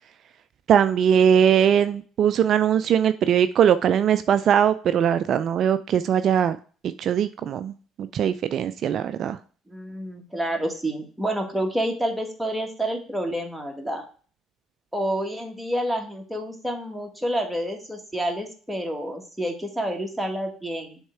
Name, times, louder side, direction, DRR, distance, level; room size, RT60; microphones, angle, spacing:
voice 1, 0.7-6.6 7.0-7.7 8.0-9.4, right 8 dB, 55° right, 12 dB, 0.3 m, -20 dB
voice 2, 9.7-14.1 14.9-21.0, right 1 dB, ahead, 1 dB, 1.8 m, -29 dB
7.1 x 3.6 x 4.5 m, 0.40 s
hypercardioid pair, 55°, 0 cm